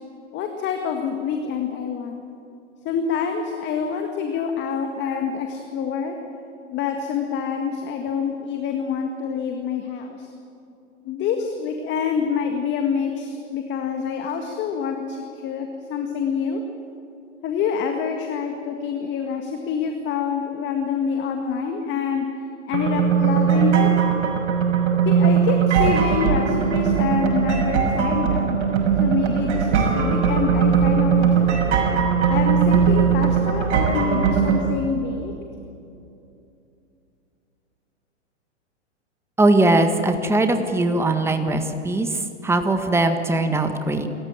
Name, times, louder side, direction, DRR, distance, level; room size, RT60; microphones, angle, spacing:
voice 1, 0.3-2.2 2.9-6.2 6.7-10.3 11.0-16.6 17.4-22.3 22.7-23.9 25.1-28.6 29.0-31.7 32.3-35.3, left 6 dB, 30° left, 4 dB, 1.9 m, -26 dB
sound 1, 22.7-34.6, right 7 dB, 65° right, 5.9 m, -19 dB
voice 2, 39.4-42.1 42.4-44.1, right 2 dB, 5° right, 7 dB, 1.6 m, -20 dB
27.0 x 15.0 x 9.0 m, 2.7 s
hypercardioid pair, 120°, 36 cm